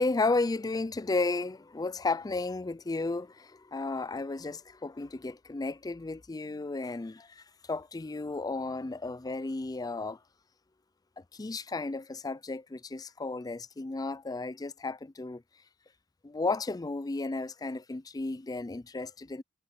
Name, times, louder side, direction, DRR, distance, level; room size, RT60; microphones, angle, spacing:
voice 1, 0.0-10.2 11.3-15.4 16.2-19.4, left 3 dB, 20° left, 0.4 m, -33 dB
head